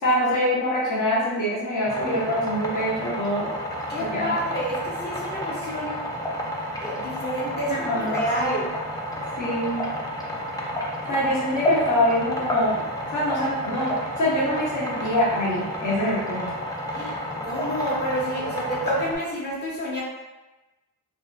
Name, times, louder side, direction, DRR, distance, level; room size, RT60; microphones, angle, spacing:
voice 1, 0.0-3.5 4.1-4.3 7.7-8.6 9.4-9.8 11.1-12.8 13.1-16.5, left 1 dB, 55° left, -6 dB, 1.0 m, -24 dB
sound 1, 1.9-19.2, equal, 10° left, 0.4 m, -30 dB
voice 2, 3.9-6.0 6.8-8.7 16.9-17.2 17.4-20.0, equal, 30° left, -6 dB, 0.9 m, -29 dB
2.5 x 2.1 x 2.4 m, 1.1 s
cardioid pair, 70°, 36 cm